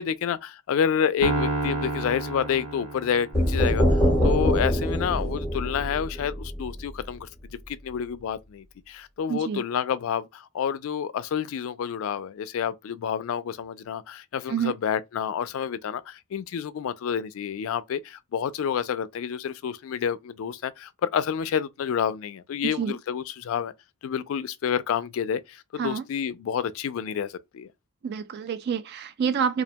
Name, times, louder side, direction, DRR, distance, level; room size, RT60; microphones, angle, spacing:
voice 1, 0.0-7.3 7.7-23.7 24.0-27.7, left 8 dB, 65° left, 0.3 m, -29 dB
Piano, 1.2-3.6, right 2 dB, 80° right, 0.8 m, -30 dB
sound 1, 3.3-7.1, equal, 5° left, 0.9 m, -24 dB
voice 2, 9.3-9.6 14.5-14.7 22.6-23.0 25.8-26.0 28.0-29.6, right 7 dB, 50° right, 0.3 m, -28 dB
2.5 x 2.1 x 2.8 m
head